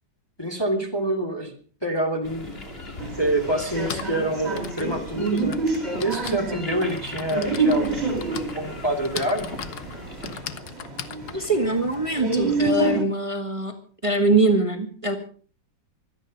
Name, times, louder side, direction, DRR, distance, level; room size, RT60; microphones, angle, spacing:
voice 1, 0.4-1.5 1.8-2.6 3.2-5.6 6.0-9.5, right 1 dB, 15° left, 1 dB, 2.5 m, -26 dB
sound 1, 2.2-10.4, left 1 dB, 30° left, 2.8 m, -39 dB
Typing, 2.5-2.6 3.6-12.7, left 9 dB, 65° left, 1.5 m, -39 dB
sound 2, 3.0-13.0, right 3 dB, 35° right, 3.0 m, -28 dB
voice 2, 11.3-13.7 14.0-15.2, right 2 dB, 20° right, 5 dB, 1.6 m, -22 dB
25.0 x 9.4 x 5.3 m, 0.42 s
omnidirectional pair, 1.9 m